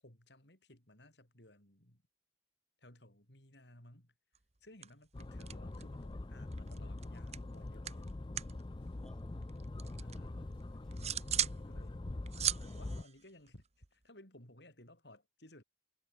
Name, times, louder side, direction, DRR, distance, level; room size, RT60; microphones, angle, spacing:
voice 1, 0.0-2.0 2.8-4.1 4.6-8.1 10.0-10.5 11.1-12.1 12.6-15.6, left 1 dB, 65° left, 7.9 m, -59 dB
sound 1, 4.3-4.6 4.8-6.0 6.3-8.6 8.9-10.2 10.6-11.6 11.9-14.0, right 10 dB, 35° right, 1.2 m, -39 dB
sound 2, 5.1-13.0, left 2 dB, 25° left, 0.5 m, -44 dB
voice 2, 9.0-11.2, equal, 5° left, 2.5 m, -60 dB
head